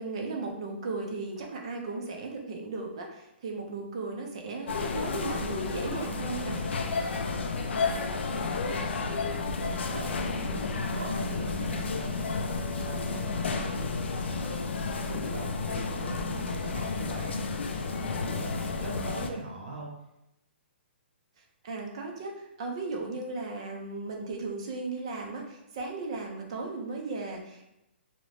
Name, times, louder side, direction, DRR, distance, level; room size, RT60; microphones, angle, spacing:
voice 1, 0.0-6.6 21.6-27.7, right 3 dB, 30° right, 1 dB, 0.4 m, -36 dB
sound 1, 4.7-19.3, left 4 dB, 70° left, 0.3 m, -31 dB
voice 2, 7.2-9.0 9.7-14.6 15.0-19.9, right 2 dB, 45° right, -3 dB, 0.8 m, -42 dB
2.6 x 2.0 x 3.1 m, 0.88 s
hypercardioid pair, 180°, 6 cm